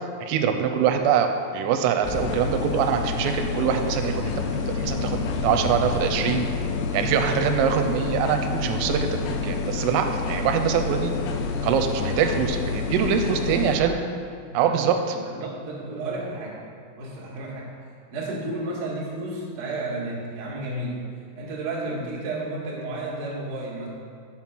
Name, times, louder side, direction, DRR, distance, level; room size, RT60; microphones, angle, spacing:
voice 1, 0.2-6.5 6.9-9.1 9.4-11.1 11.6-14.0 14.5-15.2, right 8 dB, 85° right, 6 dB, 3.1 m, -24 dB
sound 1, 2.0-13.8, left 4 dB, 80° left, 2.9 m, -28 dB
voice 2, 13.3-13.9 14.5-14.8 15.1-16.6 17.0-17.7 18.1-21.0 21.4-23.9, right 2 dB, 60° right, -6 dB, 2.2 m, -32 dB
7.3 x 6.0 x 5.8 m, 2.2 s
omnidirectional pair, 5.8 m